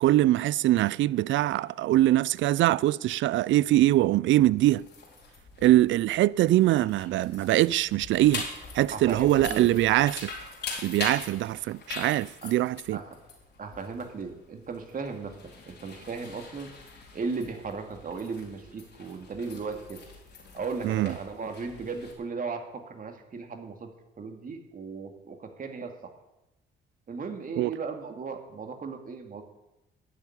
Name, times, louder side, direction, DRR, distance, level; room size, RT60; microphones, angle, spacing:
voice 1, 0.0-4.9 5.6-8.5 8.7-10.3 10.8-13.0 20.8-21.1 27.6-27.7, right 15 dB, 75° right, 0.4 m, -23 dB
sound 1, 4.5-22.1, left 4 dB, 60° left, 4.2 m, -43 dB
voice 2, 8.9-9.7 12.4-12.5 12.9-13.2 13.6-15.4 15.7-16.7 17.1-20.0 20.5-23.9 24.2-25.9 27.1-29.4, right 4 dB, 45° right, 2.3 m, -36 dB
12.5 x 7.1 x 9.7 m
cardioid pair, 90°, 20 cm